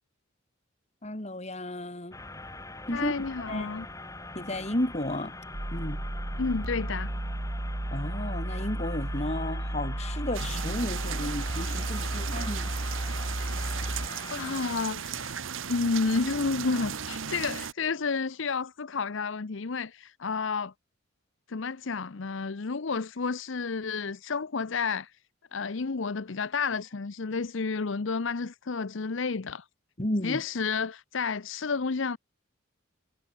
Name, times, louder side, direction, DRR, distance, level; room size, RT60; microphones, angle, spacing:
voice 1, 1.0-2.2 2.9-3.7 4.4-5.4 5.7-6.0 7.9-12.7 30.0-30.4, left 1 dB, 30° left, 2.1 m, -33 dB
sound 1, 2.1-14.9, left 2 dB, 15° left, 3.2 m, -43 dB
voice 2, 2.9-3.9 6.4-7.1 13.9-14.0 14.3-15.3 15.7-20.7 21.5-25.1 25.5-29.6 30.2-32.2, left 4 dB, 65° left, 0.7 m, -31 dB
sound 2, 5.5-14.1, right 1 dB, 50° right, 1.6 m, -33 dB
sound 3, 10.3-17.7, right 7 dB, 70° right, 1.0 m, -36 dB
head